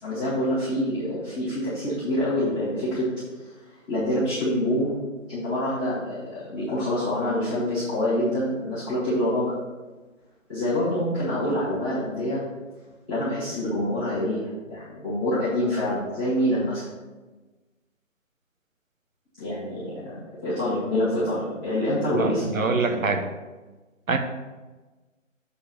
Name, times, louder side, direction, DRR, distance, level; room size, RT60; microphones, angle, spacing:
voice 1, 0.0-3.0 3.4-3.5 3.9-5.0 5.3-9.5 10.5-12.4 13.1-16.8 19.4-20.0 20.3-23.0, left 1 dB, ahead, -17 dB, 0.7 m, -26 dB
voice 2, 22.1-23.3 24.1-24.2, right 4 dB, 85° right, 6 dB, 1.0 m, -24 dB
7.3 x 3.3 x 6.3 m, 1.2 s
figure-of-eight pair, 160°, 39 cm